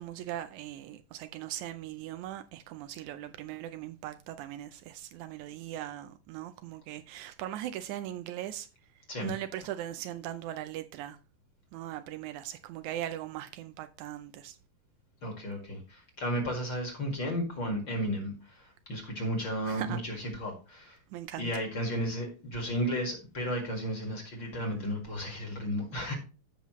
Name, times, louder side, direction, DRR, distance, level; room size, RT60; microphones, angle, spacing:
voice 1, 0.0-8.7 9.2-11.2 11.7-14.6 19.7-20.0 21.1-21.5, right 12 dB, 90° right, 1.7 m, -39 dB
voice 2, 15.2-21.0 21.4-26.2, equal, 40° left, 2.2 m, -33 dB
15.0 x 5.6 x 3.1 m
omnidirectional pair, 4.0 m